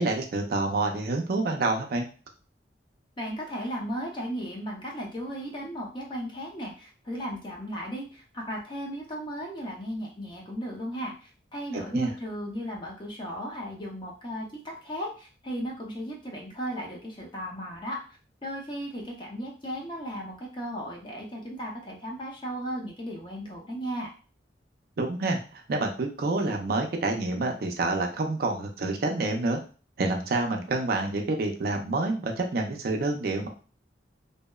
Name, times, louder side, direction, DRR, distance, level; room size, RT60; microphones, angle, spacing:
voice 1, 0.0-2.1 11.9-12.1 25.0-29.6 30.0-33.5, right 2 dB, 55° right, 2 dB, 0.4 m, -28 dB
voice 2, 3.2-18.0 18.4-24.1, equal, 30° left, -1 dB, 0.6 m, -36 dB
2.7 x 2.0 x 2.2 m, 0.36 s
head